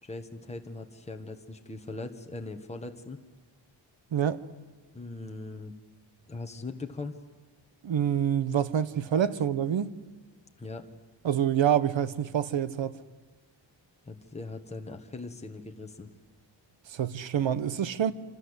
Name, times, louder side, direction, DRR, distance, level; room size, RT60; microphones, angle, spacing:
voice 1, 0.0-3.2 4.9-5.7 6.3-7.1 10.6-10.9 14.0-16.1, left 2 dB, 15° left, 1.5 m, -40 dB
voice 2, 4.1-4.4 7.8-10.0 11.2-13.0 16.9-18.1, right 9 dB, 75° right, 1.3 m, -27 dB
27.5 x 26.5 x 8.2 m
wide cardioid pair, 160°, 45 cm